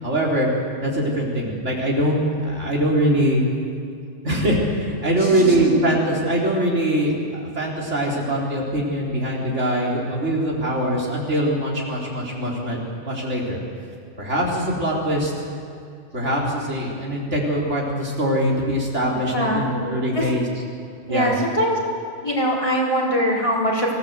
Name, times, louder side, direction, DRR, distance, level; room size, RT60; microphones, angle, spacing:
voice 1, 0.0-0.5 0.8-3.4 4.2-7.2 7.6-13.6 14.2-15.3 16.1-20.4 21.1-21.3, right 1 dB, 80° right, -3 dB, 4.4 m, -22 dB
voice 2, 5.1-5.8 19.2-19.6 20.1-20.3 21.1-21.8 22.2-23.9, equal, 25° left, -4 dB, 4.7 m, -22 dB
25.0 x 17.0 x 8.1 m, 2.5 s
omnidirectional pair, 1.2 m